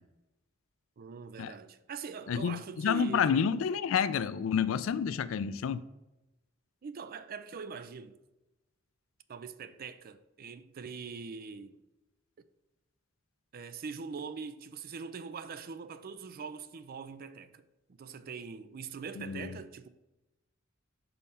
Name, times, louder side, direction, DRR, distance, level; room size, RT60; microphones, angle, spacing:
voice 1, 1.0-3.4 6.8-8.2 9.3-11.8 13.5-17.6 17.9-19.9, right 5 dB, 45° right, 0.4 m, -42 dB
voice 2, 2.3-5.8 19.2-19.6, left 7 dB, 75° left, 0.4 m, -29 dB
5.5 x 4.2 x 5.6 m
head